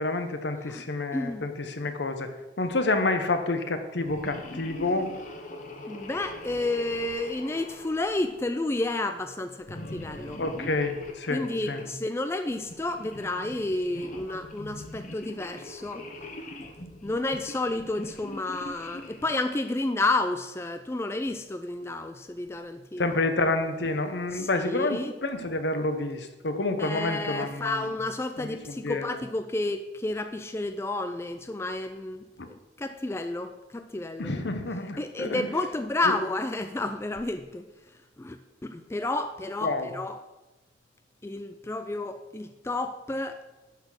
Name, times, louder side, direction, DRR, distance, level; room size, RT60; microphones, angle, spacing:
voice 1, 0.0-2.3 2.6-5.1 10.4-11.8 23.0-27.8 28.4-29.2 32.4-32.5 34.2-35.5 36.0-36.1 39.6-39.9, left 2 dB, 70° left, 7 dB, 1.0 m, -29 dB
voice 2, 1.1-1.4 5.9-10.4 11.3-16.1 17.0-23.2 24.3-25.1 26.8-34.3 35.0-37.7 38.2-40.2 41.2-43.4, left 2 dB, 15° left, 8 dB, 0.4 m, -31 dB
sound 1, 3.9-8.8 9.6-11.9 12.6-19.4, left 1 dB, 45° left, 1.1 m, -42 dB
11.5 x 4.2 x 6.3 m, 1.1 s
head